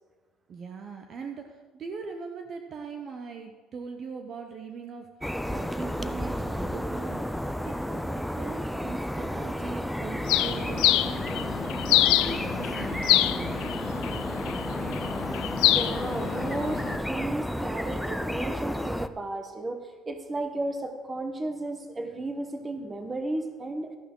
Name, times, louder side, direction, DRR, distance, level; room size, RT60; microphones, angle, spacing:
voice 1, 0.5-5.1 5.5-7.3 7.6-11.2 11.9-13.6, right 5 dB, 35° right, 4 dB, 0.8 m, -40 dB
sound 1, 5.2-19.1, equal, ahead, 0.4 m, -32 dB
Bird, 10.3-17.0, left 15 dB, 75° left, 0.5 m, -26 dB
voice 2, 15.6-23.9, right 2 dB, 15° right, 6 dB, 1.1 m, -34 dB
13.0 x 11.5 x 3.8 m, 1.4 s
cardioid pair, 160°, 0 cm